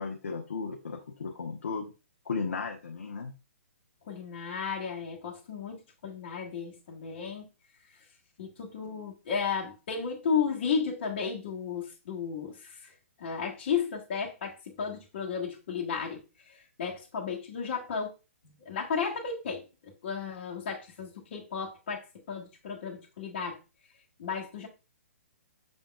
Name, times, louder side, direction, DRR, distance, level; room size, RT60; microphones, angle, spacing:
voice 1, 0.0-1.9 2.3-3.3, left 4 dB, 70° left, 0.8 m, -35 dB
voice 2, 4.1-7.5 8.4-12.8 13.2-16.2 16.8-18.1 18.6-19.7 20.0-23.6 24.2-24.7, left 6 dB, 50° left, 1.5 m, -33 dB
6.3 x 3.6 x 2.3 m
figure-of-eight pair, 130°, 8 cm